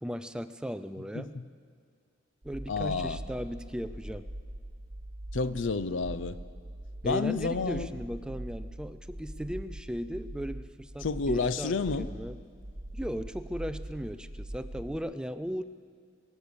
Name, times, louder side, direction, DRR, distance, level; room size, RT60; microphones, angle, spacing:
voice 1, 0.0-1.4 2.4-4.3 7.0-12.4 12.9-15.6, equal, 5° right, 0.3 m, -37 dB
sound 1, 2.4-15.0, right 1 dB, 75° right, 1.4 m, -42 dB
voice 2, 2.7-3.2 5.3-6.4 7.0-7.9 11.0-12.1, left 4 dB, 80° left, 0.6 m, -30 dB
23.0 x 8.0 x 7.0 m
head